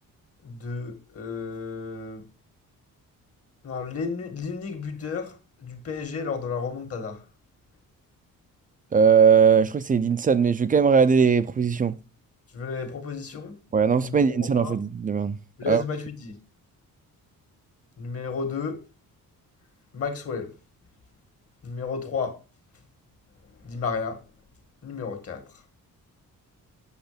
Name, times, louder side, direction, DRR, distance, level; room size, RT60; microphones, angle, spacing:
voice 1, 0.4-2.2 3.6-5.3 5.6-7.2 12.5-13.5 14.0-14.8 15.6-16.3 18.0-18.8 19.9-20.5 21.6-22.4 23.6-24.2 24.8-25.4, left 5 dB, 45° left, 1.9 m, -32 dB
voice 2, 8.9-11.9 13.7-15.4 15.7-15.8, right 6 dB, 25° right, 0.4 m, -19 dB
8.1 x 6.6 x 5.1 m
wide cardioid pair, 170°, 34 cm